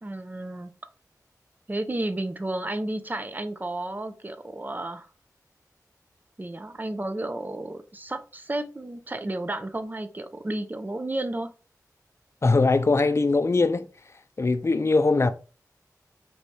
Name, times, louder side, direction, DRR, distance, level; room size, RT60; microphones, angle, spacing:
voice 1, 0.0-0.7 1.7-5.1 6.4-11.5, right 1 dB, 30° right, 0.6 m, -32 dB
voice 2, 12.4-13.9 14.4-15.3, left 3 dB, 45° left, 0.5 m, -21 dB
4.6 x 2.7 x 3.2 m
wide cardioid pair, 60°, 7 cm